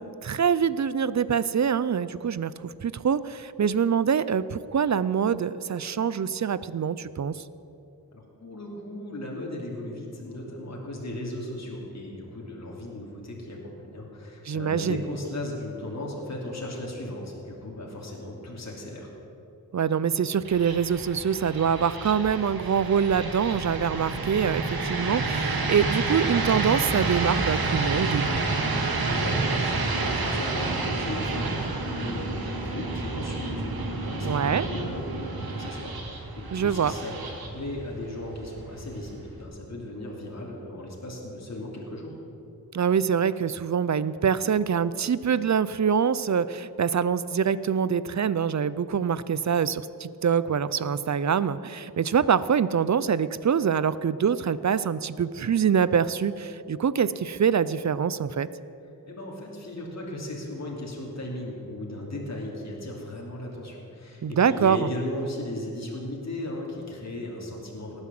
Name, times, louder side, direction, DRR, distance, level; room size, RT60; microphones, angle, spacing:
voice 1, 0.0-7.3 14.5-15.0 19.7-28.5 34.2-34.7 36.5-36.9 42.7-58.5 64.2-64.9, right 7 dB, 50° right, 16 dB, 0.5 m, -25 dB
voice 2, 8.1-19.1 29.0-42.1 59.1-68.0, left 1 dB, 45° left, -2 dB, 2.9 m, -36 dB
sound 1, 20.4-39.4, right 3 dB, 80° right, 2.0 m, -30 dB
18.5 x 9.8 x 7.7 m, 2.8 s
wide cardioid pair, 125°, 36 cm